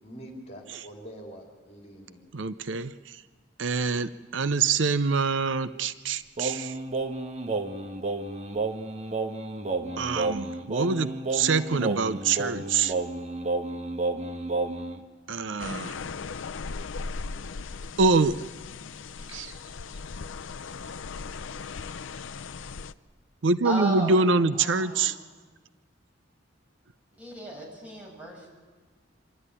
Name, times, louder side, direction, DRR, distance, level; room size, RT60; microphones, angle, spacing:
voice 1, 0.0-2.2, equal, 35° left, 0 dB, 3.7 m, -45 dB
voice 2, 2.3-3.2 3.6-6.8 10.0-12.9 15.3-16.0 18.0-18.4 19.3-19.5 23.4-25.2, right 4 dB, 70° right, 13 dB, 0.6 m, -25 dB
Singing, 6.4-15.0, right 3 dB, 35° right, 1.3 m, -31 dB
sound 1, 15.6-22.9, left 4 dB, 80° left, 0.6 m, -38 dB
voice 3, 23.6-24.3 24.6-25.1 27.2-28.5, right 2 dB, 10° right, -2 dB, 6.6 m, -35 dB
26.0 x 12.5 x 9.9 m, 1.4 s
head